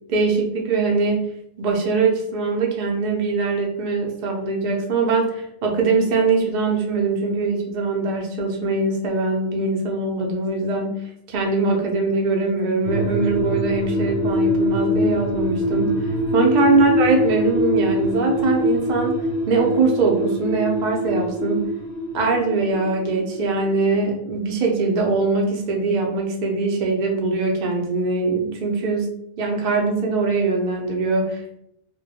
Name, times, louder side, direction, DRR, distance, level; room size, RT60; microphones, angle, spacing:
voice 1, 0.1-1.3 1.6-11.0 11.3-16.1 16.3-19.2 19.5-21.7 22.1-31.6, right 3 dB, 60° right, 0 dB, 0.5 m, -22 dB
sound 1, 12.8-23.6 23.9-24.0, left 1 dB, 50° left, 0.5 m, -23 dB
2.2 x 2.1 x 2.7 m, 0.75 s
omnidirectional pair, 1.2 m